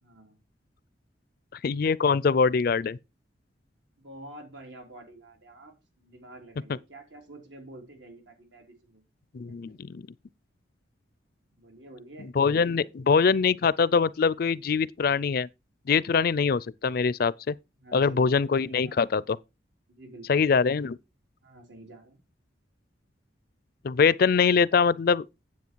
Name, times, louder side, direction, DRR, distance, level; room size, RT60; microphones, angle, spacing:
voice 1, 0.0-0.4 4.0-5.7 6.0-9.0 9.5-9.8 11.6-12.3 12.8-12.9 17.8-19.0 19.9-20.4 21.4-22.2, right 1 dB, 85° right, 3.7 m, -48 dB
voice 2, 1.5-3.0 9.3-10.0 12.4-15.5 15.9-17.5 17.9-19.4 20.3-21.0 23.8-25.3, left 5 dB, 50° left, 0.4 m, -23 dB
9.5 x 7.8 x 4.5 m
head